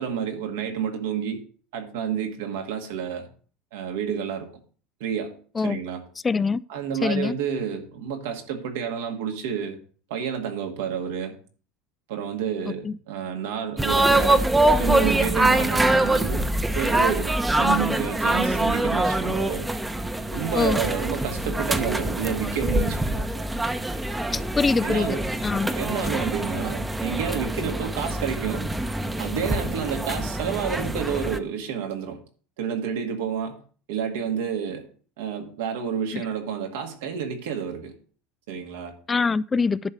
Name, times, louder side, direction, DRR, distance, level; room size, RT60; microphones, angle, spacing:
voice 1, 0.0-1.4 1.7-3.3 3.7-4.5 5.0-6.0 6.7-9.8 10.1-11.4 12.1-14.5 14.8-16.5 16.7-19.7 20.3-23.3 24.8-25.3 25.7-28.7 29.2-32.2 32.6-33.6 33.9-34.9 35.2-37.9 38.5-39.0, right 7 dB, 80° right, 1.9 m, -30 dB
voice 2, 6.2-6.6 7.0-7.3 12.8-12.9 20.5-20.8 24.3-25.2 25.4-25.7 39.1-39.9, left 4 dB, 20° left, 0.3 m, -23 dB
sound 1, 13.8-31.4, right 1 dB, 10° right, 0.9 m, -24 dB
10.5 x 3.8 x 7.3 m
hypercardioid pair, 95°, 0 cm